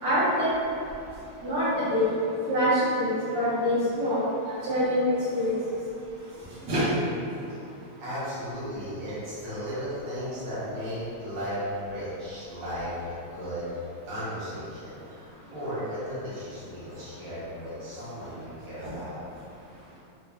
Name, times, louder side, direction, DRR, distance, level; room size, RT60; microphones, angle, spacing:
voice 1, 0.0-0.5 1.4-2.0 2.5-4.2 4.6-5.5 6.7-6.9 18.8-18.9, equal, 90° right, -11 dB, 0.9 m, -25 dB
voice 2, 8.0-13.7 14.0-19.2, equal, 70° right, -12 dB, 2.2 m, -35 dB
4.8 x 2.5 x 2.2 m, 2.6 s
omnidirectional pair, 3.3 m